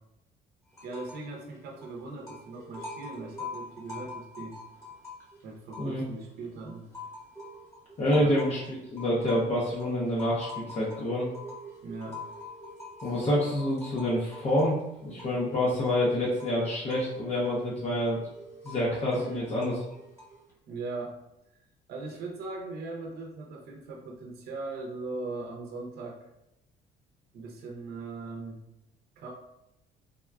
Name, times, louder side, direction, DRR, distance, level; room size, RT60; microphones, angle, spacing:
sound 1, 0.7-1.3 1.6-6.3 6.7-20.5, left 2 dB, 15° left, 1.0 m, -45 dB
voice 1, 0.8-4.6 5.4-6.9 8.1-8.4 11.8-12.2 13.0-13.2 19.1-19.4 20.7-21.2 21.9-26.3 27.3-28.6 29.2-29.3, right 3 dB, 65° right, 0 dB, 0.7 m, -39 dB
voice 2, 8.0-11.3 13.0-14.8 15.0-18.2 18.6-19.8, left 1 dB, 40° left, -6 dB, 0.7 m, -27 dB
3.5 x 2.4 x 2.2 m, 0.88 s
cardioid pair, 110°, 17 cm